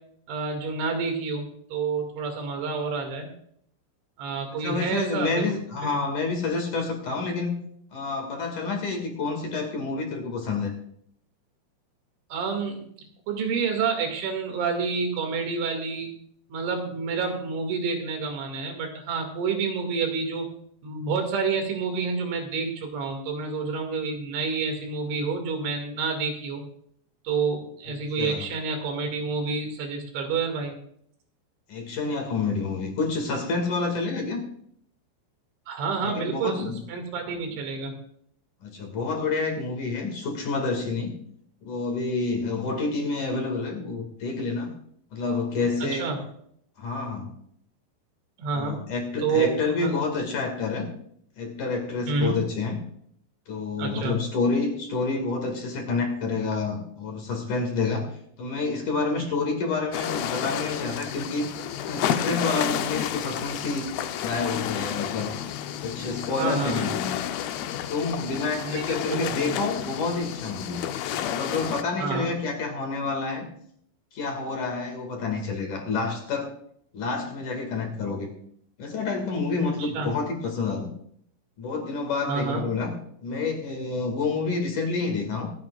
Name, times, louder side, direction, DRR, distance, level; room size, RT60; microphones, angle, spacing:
voice 1, 0.3-3.3 4.2-5.5 5.8-6.0 12.3-12.8 13.3-16.1 16.5-20.5 20.8-26.6 27.2-30.8 35.7-37.9 46.0-46.2 48.4-48.8 49.2-49.5 49.8-49.9 52.1-52.4 53.8-54.2 59.2-59.3 66.4-66.9 68.6-69.6 72.0-72.3 79.8-80.1 82.3-82.7, right 4 dB, 90° right, 4 dB, 4.7 m, -28 dB
voice 2, 4.6-7.6 7.9-10.7 28.2-28.5 31.7-34.4 36.0-36.8 38.6-41.1 41.6-44.7 45.1-46.1 46.8-47.3 48.5-50.9 51.4-52.8 53.5-58.1 58.4-61.5 61.8-65.3 65.8-67.2 67.9-70.9 71.3-73.4 74.1-76.5 76.9-78.3 78.8-80.9 81.6-82.9 83.2-85.5, left 4 dB, 50° left, 2 dB, 3.2 m, -28 dB
sound 1, 59.9-71.8, left 10 dB, 80° left, 2.2 m, -31 dB
26.5 x 8.9 x 2.4 m, 0.66 s
omnidirectional pair, 5.2 m